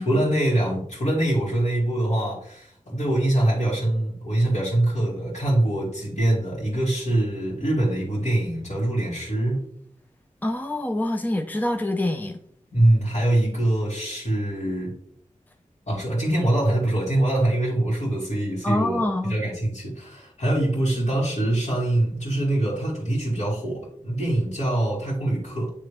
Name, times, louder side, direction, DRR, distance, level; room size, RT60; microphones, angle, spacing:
voice 1, 0.0-9.6 12.7-14.9 15.9-25.7, right 1 dB, 65° left, -10 dB, 2.4 m, -24 dB
voice 2, 10.4-12.4 18.6-19.3, left 1 dB, 15° left, 5 dB, 0.6 m, -25 dB
9.3 x 3.4 x 3.3 m, 0.68 s
wide cardioid pair, 55°, 14 cm